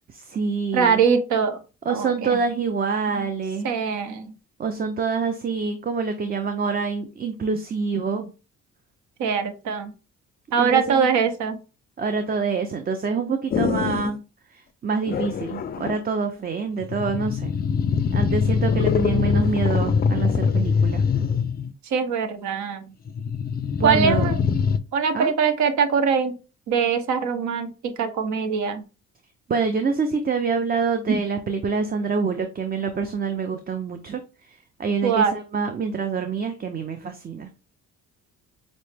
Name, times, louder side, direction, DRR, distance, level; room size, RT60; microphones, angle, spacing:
voice 1, 0.1-1.0 1.9-3.7 4.6-8.3 10.6-11.1 12.0-14.2 14.8-17.5 18.1-21.0 23.8-24.3 25.1-25.3 29.5-34.2 34.8-37.5, right 5 dB, 30° right, 7 dB, 0.5 m, -26 dB
voice 2, 0.7-1.6 1.9-2.4 3.1-3.3 3.6-4.3 9.2-9.9 10.5-11.6 21.9-22.8 23.8-24.4 24.9-26.3 26.7-28.8 31.1-31.2 35.0-35.3, right 6 dB, 70° right, 8 dB, 0.8 m, -22 dB
sound 1, 13.5-14.2 15.1-16.0 16.8-21.7 23.1-24.8, left 6 dB, 35° left, 0.4 m, -23 dB
5.3 x 2.0 x 3.3 m, 0.32 s
cardioid pair, 90°, 30 cm